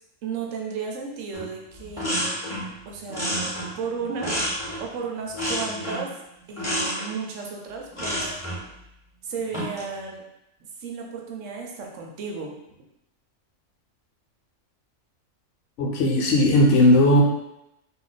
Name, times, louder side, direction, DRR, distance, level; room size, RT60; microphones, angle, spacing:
voice 1, 0.2-2.3 2.8-4.4 4.8-6.1 6.5-8.3 9.2-10.3 10.8-12.6, right 5 dB, 80° right, 0 dB, 1.0 m, -34 dB
sound 1, 1.3-1.5 1.8-2.7 3.1-4.9 5.3-6.1 6.6-7.1 7.9-8.6 9.4-9.9, equal, 25° left, 0.9 m, -29 dB
voice 2, 15.8-17.2, left 1 dB, 70° left, 0 dB, 0.9 m, -17 dB
2.5 x 2.2 x 3.9 m, 0.87 s
omnidirectional pair, 1.3 m